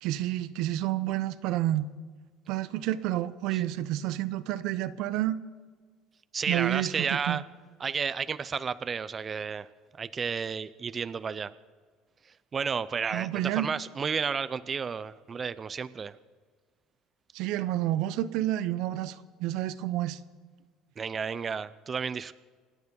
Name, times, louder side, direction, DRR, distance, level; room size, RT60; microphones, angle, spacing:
voice 1, 0.0-1.9 2.5-5.4 6.5-7.4 13.1-13.7 17.3-20.2, right 14 dB, 75° right, 14 dB, 0.8 m, -29 dB
voice 2, 6.3-7.4 7.8-9.7 10.0-11.5 12.5-16.2 21.0-22.3, right 6 dB, 30° right, 15 dB, 0.5 m, -32 dB
27.5 x 9.5 x 5.5 m, 1.6 s
supercardioid pair, 100°, 0 cm